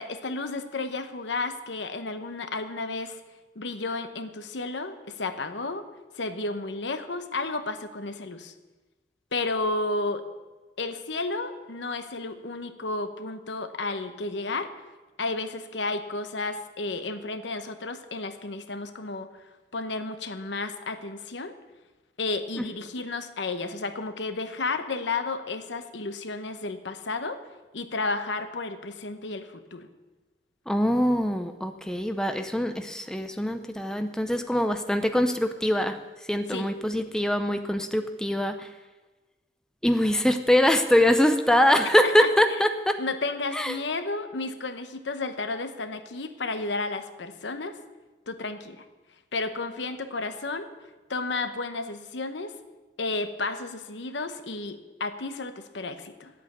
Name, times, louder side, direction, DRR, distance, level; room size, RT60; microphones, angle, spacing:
voice 1, 0.0-3.2 3.6-5.8 6.2-8.5 9.3-10.2 10.8-14.7 15.2-19.3 19.7-21.5 22.2-27.4 27.7-29.9 36.5-36.7 42.0-42.3 43.0-47.7 48.3-48.8 49.3-50.7 51.1-52.5 53.0-56.3, left 3 dB, 80° left, 8 dB, 0.9 m, -32 dB
voice 2, 30.7-36.0 36.3-38.7 39.8-43.0 43.5-43.8, equal, 5° left, 7 dB, 0.6 m, -23 dB
8.9 x 8.4 x 9.3 m, 1.2 s
head